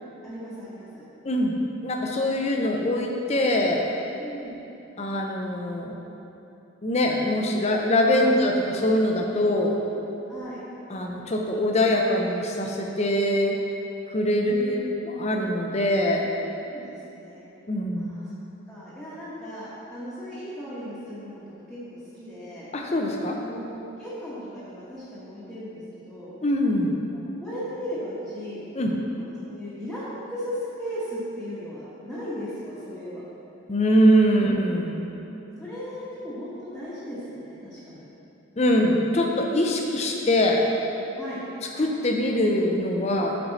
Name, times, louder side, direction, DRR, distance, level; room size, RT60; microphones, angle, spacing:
voice 1, 0.2-1.0 4.2-4.6 8.2-8.4 10.3-10.6 14.4-15.0 16.7-17.4 17.9-18.2 18.7-21.4 21.7-22.7 23.4-26.3 27.1-28.6 28.9-33.2 34.4-34.5 35.6-38.1 41.2-41.4, equal, ahead, -12 dB, 1.2 m, -37 dB
voice 2, 1.2-3.9 5.0-6.0 6.8-9.8 10.9-13.5 14.1-14.8 15.0-16.3 17.7-18.1 22.7-23.4 26.4-26.9 28.8-28.9 33.7-35.1 38.6-40.6 41.8-43.4, left 1 dB, 30° left, 1 dB, 0.6 m, -23 dB
7.6 x 4.7 x 4.0 m, 3.0 s
head